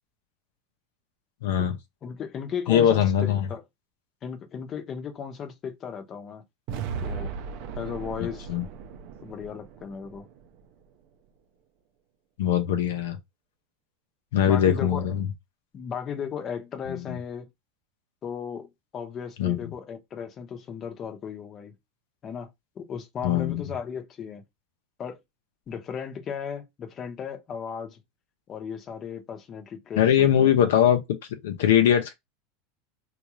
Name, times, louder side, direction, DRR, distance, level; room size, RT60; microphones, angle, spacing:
voice 1, 1.4-1.7 2.7-3.5 8.5-8.6 12.4-13.2 14.3-15.3 19.4-19.6 23.2-23.6 30.0-31.0 31.4-32.1, left 9 dB, 85° left, 0.7 m, -21 dB
voice 2, 2.0-3.6 4.2-6.4 7.0-7.3 7.8-8.5 9.2-10.3 14.4-15.1 15.7-17.5 18.2-21.7 22.2-22.5 22.8-24.4 25.0-25.2 25.7-28.0 28.5-30.7, left 7 dB, 30° left, 0.9 m, -36 dB
sound 1, 6.7-10.8, right 6 dB, 55° right, 0.5 m, -37 dB
3.8 x 2.4 x 3.0 m
supercardioid pair, 140°, 0 cm